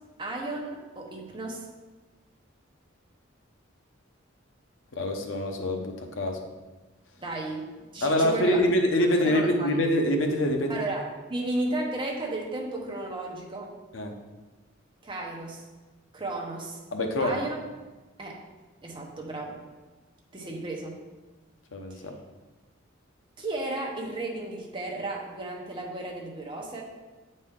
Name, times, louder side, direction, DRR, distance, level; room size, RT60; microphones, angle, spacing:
voice 1, 0.2-1.7 7.2-8.6 9.0-9.7 10.7-11.0 11.3-13.7 15.0-15.6 16.1-16.8 17.2-17.6 18.2-18.4 18.8-19.6 20.3-21.0 21.9-22.1 23.4-26.8, right 2 dB, 25° right, -1 dB, 1.0 m, -34 dB
voice 2, 4.9-6.4 8.0-10.8 13.9-14.1 16.9-17.4 21.7-22.2, equal, 65° left, 3 dB, 0.8 m, -25 dB
8.3 x 4.3 x 3.7 m, 1.2 s
head